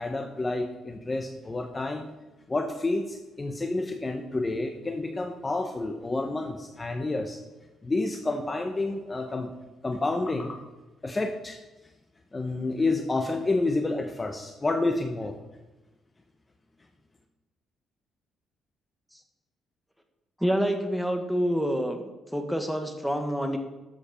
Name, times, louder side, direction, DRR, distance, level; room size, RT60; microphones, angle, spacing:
voice 1, 0.0-2.1 2.5-7.4 7.8-9.5 9.8-10.6 11.0-11.6 12.3-15.4, left 2 dB, 25° left, 5 dB, 1.0 m, -29 dB
voice 2, 20.4-22.0 22.3-23.6, equal, ahead, 5 dB, 1.6 m, -27 dB
12.5 x 7.9 x 4.3 m, 1.1 s
cardioid pair, 90°, 0 cm